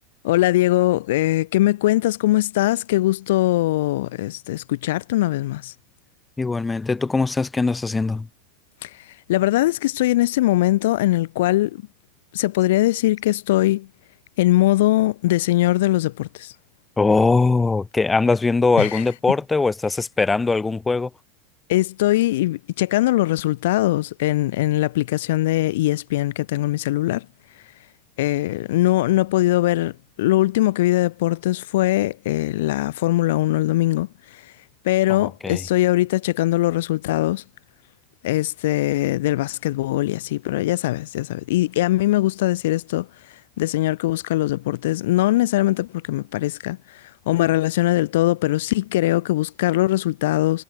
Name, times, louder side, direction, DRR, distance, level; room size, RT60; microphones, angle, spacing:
voice 1, 0.2-5.7 8.8-11.8 12.3-13.9 14.4-16.5 18.8-19.0 21.7-27.3 28.2-29.9 30.2-34.5 34.8-37.4 38.2-43.1 43.6-50.6, left 16 dB, 65° left, 3.7 m, -21 dB
voice 2, 6.4-8.3 17.0-21.1 35.2-35.6, left 3 dB, 15° left, 5.4 m, -21 dB
hypercardioid pair, 90°, 0 cm